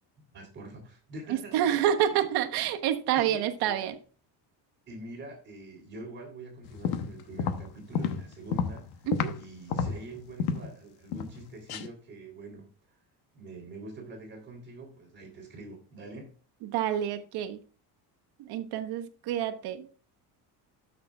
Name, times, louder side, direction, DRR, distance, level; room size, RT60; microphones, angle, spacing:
voice 1, 0.3-1.8 3.2-3.7 4.9-9.1 9.3-13.0 13.3-16.3, right 2 dB, 30° right, 3.4 m, -45 dB
voice 2, 1.3-4.0 9.1-9.4 16.6-17.6 18.4-19.9, right 10 dB, 70° right, 1.2 m, -28 dB
sound 1, 6.7-9.4 9.7-10.7 11.1-11.4 11.7-11.9, left 6 dB, 70° left, 1.1 m, -31 dB
13.0 x 6.6 x 2.4 m
cardioid pair, 160°, 39 cm